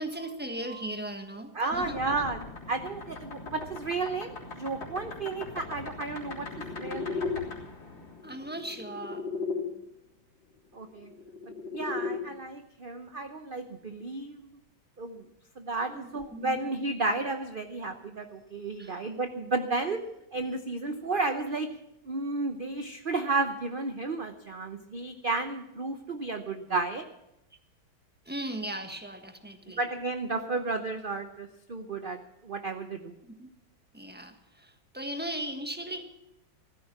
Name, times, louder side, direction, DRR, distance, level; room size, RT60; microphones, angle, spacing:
voice 1, 0.0-2.0 8.2-9.3 15.9-16.6 18.8-18.9 28.2-29.8 33.2-33.5 33.9-36.0, right 1 dB, 5° right, 6 dB, 1.3 m, -38 dB
voice 2, 1.5-7.3 10.7-11.1 11.7-14.4 15.0-15.3 15.6-20.0 20.3-21.7 22.0-27.0 29.8-33.1, right 3 dB, 40° right, 7 dB, 0.8 m, -32 dB
sound 1, 1.7-9.6 10.9-12.2, left 4 dB, 75° left, 4.3 m, -38 dB
15.5 x 13.5 x 6.0 m, 0.84 s
omnidirectional pair, 2.1 m